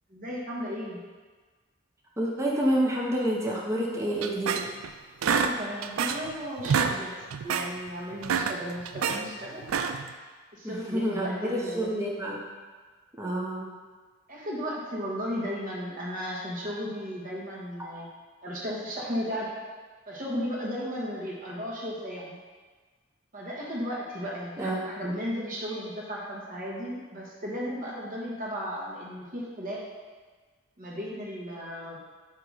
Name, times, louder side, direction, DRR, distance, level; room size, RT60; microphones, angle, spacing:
voice 1, 0.1-1.0 5.2-9.6 10.5-12.0 14.3-18.1 18.4-19.5 20.1-22.4 23.3-29.8 30.8-32.0, equal, 45° right, -4 dB, 1.4 m, -35 dB
voice 2, 2.2-4.6 10.6-12.4 13.2-13.7 24.6-25.1, right 1 dB, 15° right, -3 dB, 0.7 m, -28 dB
sound 1, 4.2-4.9 5.2-6.3 6.6-7.0 7.3-7.7 8.1-9.2 9.6-10.1, right 6 dB, 80° right, 0.4 m, -27 dB
7.8 x 3.0 x 4.9 m, 1.4 s
head